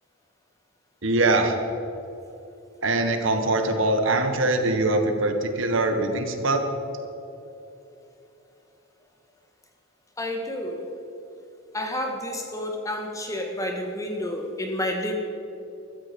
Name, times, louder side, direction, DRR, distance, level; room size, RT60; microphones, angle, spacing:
voice 1, 1.0-1.6 2.8-6.7, right 2 dB, 65° right, 6 dB, 1.5 m, -23 dB
voice 2, 10.2-10.9 11.7-15.2, left 1 dB, 15° left, 3 dB, 1.7 m, -30 dB
15.5 x 13.5 x 5.3 m, 2.9 s
head